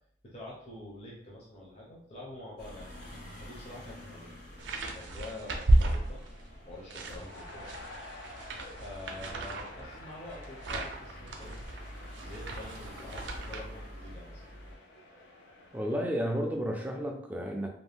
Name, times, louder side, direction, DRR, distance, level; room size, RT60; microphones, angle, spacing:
voice 1, 0.2-2.9 3.4-4.3 4.9-6.2 6.6-7.7 8.8-11.6 12.2-14.4, left 2 dB, 35° left, -4 dB, 0.6 m, -46 dB
sound 1, 2.6-14.7, equal, 55° left, 0.9 m, -48 dB
sound 2, 4.6-6.5 6.9-13.6, right 1 dB, 80° right, 0.4 m, -32 dB
sound 3, 6.0-16.0, left 2 dB, 85° left, 0.5 m, -51 dB
voice 2, 15.7-17.7, equal, 10° right, 2 dB, 0.3 m, -32 dB
2.6 x 2.1 x 3.4 m, 0.68 s
head